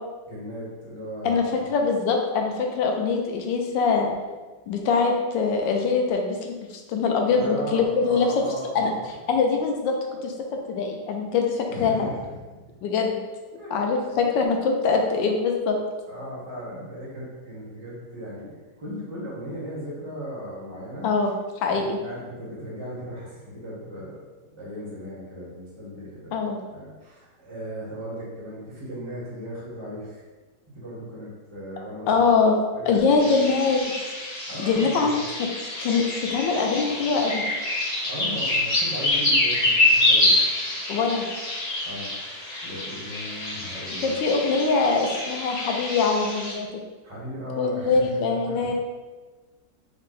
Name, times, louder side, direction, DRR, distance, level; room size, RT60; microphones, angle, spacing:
voice 1, 0.3-1.5 7.3-9.0 11.7-12.2 13.6-13.7 14.1-14.2 16.1-21.1 21.8-24.2 24.5-26.3 26.7-30.2 30.7-32.3 32.7-33.2 34.5-35.2 38.0-40.4 41.8-42.1 42.6-44.1 47.0-48.7, equal, 20° right, -8 dB, 1.1 m, -36 dB
voice 2, 1.2-4.1 4.7-6.5 6.9-8.3 8.7-8.9 9.3-10.0 10.2-10.3 10.7-12.1 12.8-13.2 13.7-15.8 21.0-21.3 21.6-22.0 26.3-26.6 32.1-32.6 32.9-33.8 34.6-35.1 35.4-35.5 35.8-37.4 40.9-41.3 44.0-46.7 47.6-48.7, left 4 dB, 90° left, 2 dB, 1.4 m, -23 dB
sound 1, 33.2-46.5, left 2 dB, 50° left, 0.4 m, -26 dB
5.0 x 2.2 x 4.0 m, 1.3 s
omnidirectional pair, 2.0 m